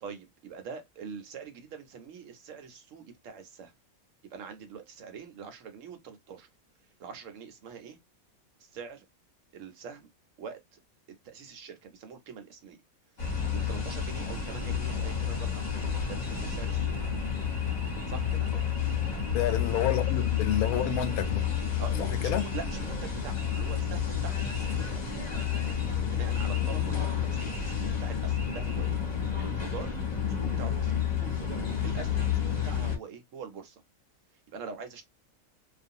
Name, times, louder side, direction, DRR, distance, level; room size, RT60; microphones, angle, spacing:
voice 1, 0.0-3.7 4.3-6.5 7.0-8.0 8.6-9.1 9.5-10.1 10.4-10.8 11.2-12.8 13.5-15.7 16.1-17.0 18.1-18.5 21.8-25.2 26.1-29.0 29.3-30.0 30.3-33.8 34.5-35.1, right 6 dB, 70° right, 1.0 m, -44 dB
sound 1, 13.2-33.0, left 8 dB, 35° left, 0.9 m, -30 dB
voice 2, 19.3-21.5 22.0-22.5, left 9 dB, 90° left, 1.0 m, -29 dB
2.4 x 2.2 x 2.6 m
omnidirectional pair, 1.5 m